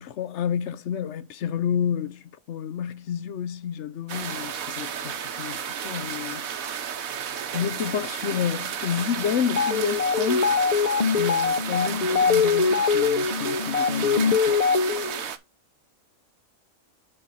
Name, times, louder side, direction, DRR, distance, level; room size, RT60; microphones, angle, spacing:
voice 1, 0.0-6.4 7.5-10.6 11.2-14.6, left 8 dB, 60° left, 0.9 m, -30 dB
sound 1, 4.1-15.4, right 8 dB, 85° right, 1.3 m, -32 dB
sound 2, 9.4-15.2, left 5 dB, 40° left, 0.6 m, -23 dB
9.8 x 3.4 x 5.5 m
omnidirectional pair, 1.4 m